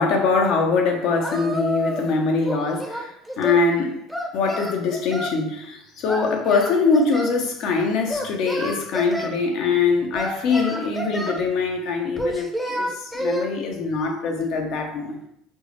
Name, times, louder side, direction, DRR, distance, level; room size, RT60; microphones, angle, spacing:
voice 1, 0.0-4.0 4.3-15.2, left 4 dB, 65° left, 0.6 m, -23 dB
Singing, 1.2-2.1 2.4-3.6 4.1-5.4 6.1-7.4 8.1-9.3 10.1-11.4 12.2-13.5, equal, 5° left, 0.6 m, -29 dB
4.3 x 2.0 x 3.0 m
supercardioid pair, 95°, 0 cm